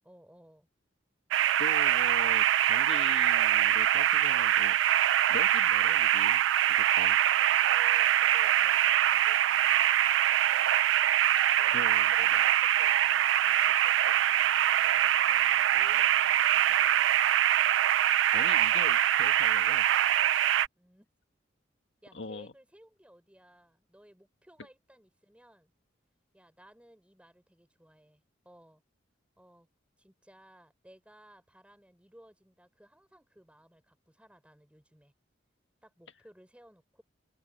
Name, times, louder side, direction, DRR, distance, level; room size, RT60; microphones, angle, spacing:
voice 1, 0.0-0.7 7.4-9.9 10.4-10.7 11.6-17.2 20.7-21.1 22.0-25.7 26.3-28.8 29.4-29.7 30.0-35.1 35.8-37.0, equal, 5° right, 4.9 m, -58 dB
sound 1, 1.3-20.7, right 11 dB, 85° right, 0.3 m, -24 dB
voice 2, 1.6-6.4 6.7-7.2 11.7-12.1 18.3-20.2 22.1-22.5, left 3 dB, 75° left, 1.9 m, -42 dB
open air
head